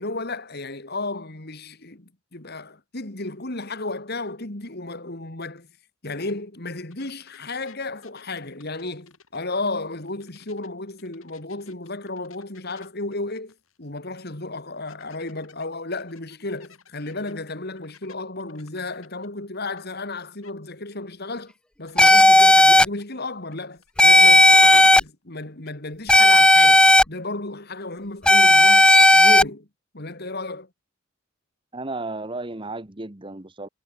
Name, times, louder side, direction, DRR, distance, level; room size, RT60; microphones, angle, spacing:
voice 1, 0.0-5.7 6.0-21.5 21.8-29.7 29.9-30.7, left 2 dB, 50° left, 2.6 m, -33 dB
sound 1, 6.9-10.7 11.0-13.9 14.2-14.3 14.9-20.2 20.4-20.5 21.4-21.5 21.9-22.4 23.0-25.1 25.3-25.7, left 6 dB, 80° left, 7.1 m, -55 dB
sound 2, 22.0-22.9 24.0-25.0 26.1-27.0 28.3-29.4, left 1 dB, 5° left, 0.3 m, -13 dB
voice 2, 31.7-33.7, right 2 dB, 25° right, 1.3 m, -33 dB
head